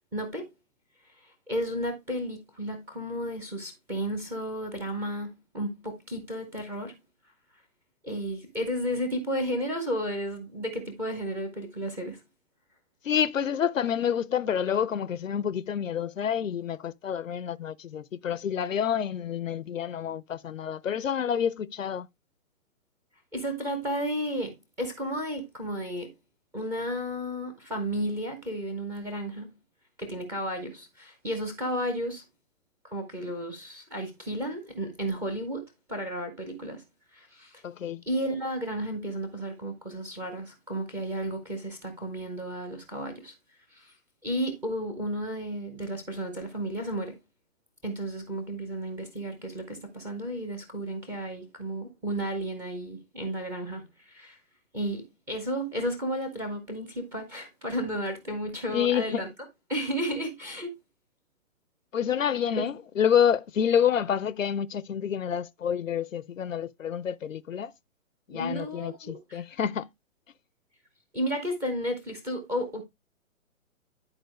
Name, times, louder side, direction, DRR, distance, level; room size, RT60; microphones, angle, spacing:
voice 1, 0.1-0.5 1.2-7.0 8.0-12.2 23.3-26.1 26.5-29.5 30.0-32.2 32.8-36.8 37.1-37.6 38.1-43.3 43.7-43.9 44.2-47.2 47.8-54.4 54.7-59.3 59.7-60.8 68.3-69.4 71.1-72.8, equal, 5° right, 0.6 m, -33 dB
voice 2, 13.0-22.1 37.6-38.0 58.7-59.2 61.9-67.7 68.3-69.9, left 8 dB, 65° left, 0.6 m, -28 dB
10.5 x 4.4 x 3.1 m
figure-of-eight pair, 125°, 42 cm